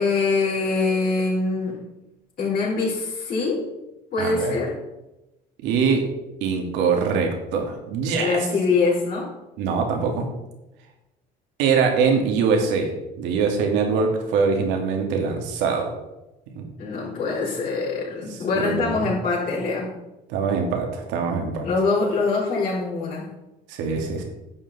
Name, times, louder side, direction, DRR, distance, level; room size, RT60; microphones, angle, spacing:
voice 1, 0.0-1.8 2.4-3.7 4.1-4.8 8.2-9.3 16.8-19.9 21.6-23.3, left 4 dB, 50° left, -9 dB, 3.9 m, -24 dB
voice 2, 4.2-4.5 5.6-6.1 6.4-8.5 9.6-10.3 11.6-12.9 13.2-15.9 16.6-16.7 18.3-19.1 20.3-21.7 23.7-24.2, right 5 dB, 85° right, 2 dB, 2.3 m, -23 dB
10.5 x 7.7 x 4.2 m, 0.97 s
cardioid pair, 105°, 18 cm